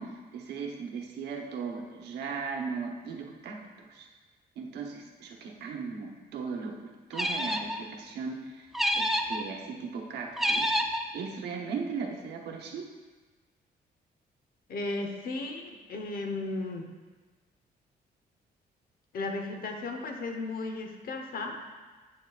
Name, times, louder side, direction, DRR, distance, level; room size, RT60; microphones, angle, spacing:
voice 1, 0.0-4.1 4.6-8.7 8.9-10.7 11.1-12.9, right 5 dB, 85° right, 1 dB, 0.9 m, -37 dB
sound 1, 7.1-7.8 8.7-9.4 10.4-11.0, equal, ahead, 0.5 m, -28 dB
voice 2, 14.7-16.9 19.1-21.6, left 2 dB, 65° left, 3 dB, 1.0 m, -35 dB
8.9 x 6.6 x 2.4 m, 1.3 s
cardioid pair, 100°, 17 cm